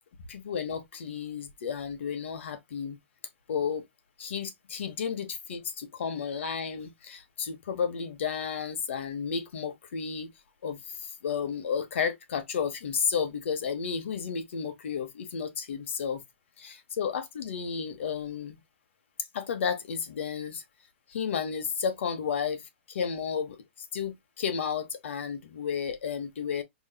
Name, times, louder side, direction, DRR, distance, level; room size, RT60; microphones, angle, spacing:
voice 1, 0.3-3.0 3.5-3.8 4.2-10.3 10.6-16.2 16.6-18.6 19.3-20.6 21.1-22.6 22.9-23.6 23.9-26.6, left 6 dB, 75° left, 1.2 m, -32 dB
5.3 x 3.1 x 2.2 m
supercardioid pair, 170°, 7 cm